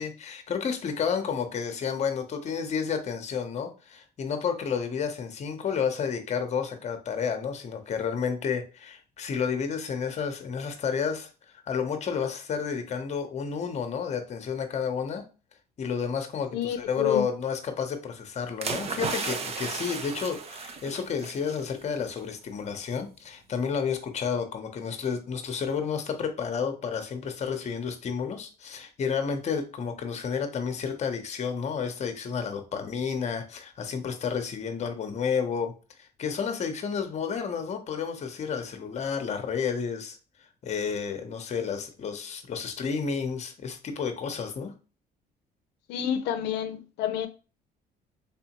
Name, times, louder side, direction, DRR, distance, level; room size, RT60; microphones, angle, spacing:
voice 1, 0.0-11.3 11.7-15.2 15.8-35.7 36.0-40.2 40.6-44.7, left 6 dB, 40° left, 0.8 m, -31 dB
voice 2, 16.5-17.3 45.9-47.3, left 9 dB, 85° left, 0.5 m, -29 dB
sound 1, 18.6-21.6 22.0-22.2, right 5 dB, 35° right, 0.6 m, -34 dB
3.6 x 3.4 x 3.0 m
cardioid pair, 110°, 17 cm